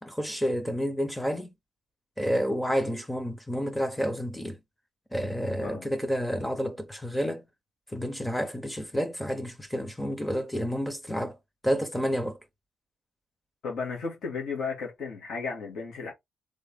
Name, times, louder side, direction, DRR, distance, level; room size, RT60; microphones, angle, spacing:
voice 1, 0.0-1.5 2.2-4.6 5.1-7.4 7.9-11.4 11.6-12.4, equal, 5° left, 0.7 m, -30 dB
voice 2, 13.6-16.1, left 4 dB, 65° left, 2.1 m, -34 dB
3.9 x 3.6 x 3.6 m
cardioid pair, 160°, 0 cm